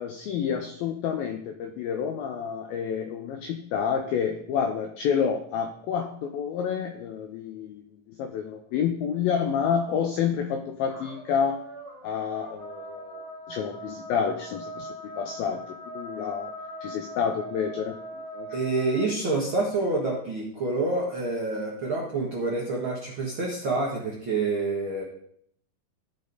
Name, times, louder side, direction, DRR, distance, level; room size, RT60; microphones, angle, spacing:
voice 1, 0.0-11.6 12.0-15.6 16.0-16.5 16.8-18.6, left 7 dB, 85° left, 5 dB, 2.1 m, -29 dB
sound 1, 10.9-19.1, equal, 50° left, 2.6 m, -41 dB
voice 2, 18.5-25.0, right 3 dB, 80° right, -4 dB, 1.1 m, -27 dB
15.5 x 5.2 x 4.0 m, 0.68 s
omnidirectional pair, 5.0 m